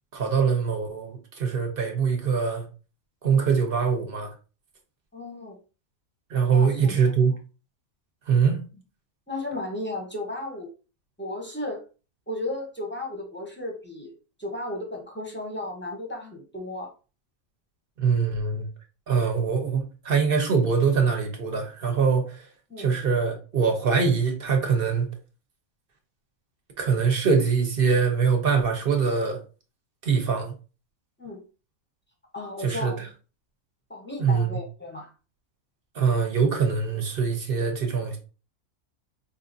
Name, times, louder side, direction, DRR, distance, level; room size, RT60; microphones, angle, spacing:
voice 1, 0.1-2.6 3.2-4.3 6.3-7.3 8.3-8.6 18.0-18.7 19.1-22.4 22.8-25.1 26.8-29.4 30.0-30.5 32.6-32.9 34.2-34.6 35.9-38.2, right 5 dB, 45° right, 1.0 m, -23 dB
voice 2, 5.1-5.6 6.5-6.9 9.3-10.7 11.2-11.8 12.3-14.1 14.4-16.9 22.7-22.9 27.0-27.1 31.2-31.4 32.3-33.0 33.9-35.1, left 2 dB, 10° left, 0.7 m, -34 dB
4.9 x 2.6 x 2.6 m
omnidirectional pair, 1.5 m